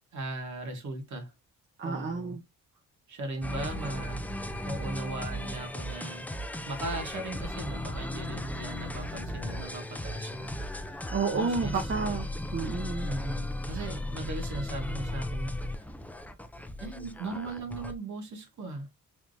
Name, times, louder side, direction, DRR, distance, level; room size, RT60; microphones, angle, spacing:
voice 1, 0.1-1.3 1.8-2.4 3.1-4.2 4.6-6.3 6.7-11.0 11.3-11.9 13.0-15.9 16.8-18.9, right 2 dB, 65° right, 1.4 m, -38 dB
voice 2, 1.8-2.4 11.1-13.1, right 4 dB, 35° right, 0.7 m, -31 dB
sound 1, 3.4-18.0, left 1 dB, 5° left, 0.3 m, -36 dB
3.4 x 2.9 x 2.6 m
cardioid pair, 90°, 32 cm